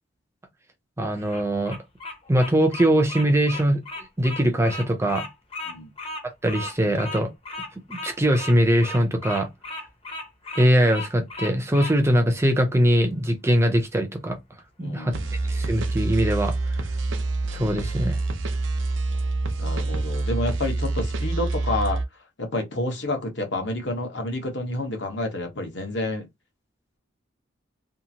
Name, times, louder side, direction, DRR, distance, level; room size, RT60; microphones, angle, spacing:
voice 1, 1.0-1.8 2.3-3.8 4.2-5.3 6.4-7.3 7.9-9.5 10.6-14.4 14.8-15.1 15.5-16.8 17.5-18.2, equal, 15° right, 0.4 m, -21 dB
Bird vocalization bird call bird song, 1.1-12.0, left 2 dB, 30° left, 0.7 m, -36 dB
voice 2, 14.8-15.3 19.6-22.0 22.4-26.3, left 2 dB, 65° left, 1.0 m, -29 dB
sound 1, 15.1-22.1, right 2 dB, 75° right, 0.6 m, -26 dB
2.8 x 2.4 x 2.7 m
head